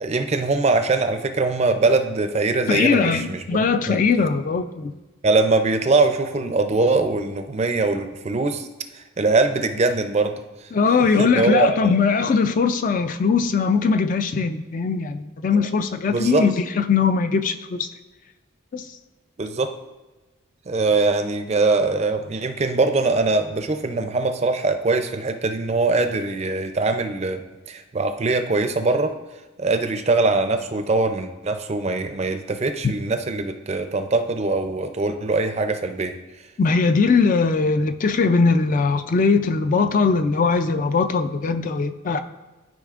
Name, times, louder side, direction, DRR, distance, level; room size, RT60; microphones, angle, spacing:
voice 1, 0.0-3.4 3.9-4.0 5.2-8.7 9.2-10.4 11.0-11.9 15.5-15.6 16.1-16.4 19.4-19.7 20.7-27.4 27.7-29.1 29.6-36.2, right 3 dB, 30° right, 7 dB, 0.4 m, -22 dB
voice 2, 2.7-4.9 10.7-17.9 18.7-18.9 36.6-42.2, left 4 dB, 40° left, 9 dB, 0.3 m, -20 dB
12.5 x 5.0 x 2.4 m, 1.2 s
head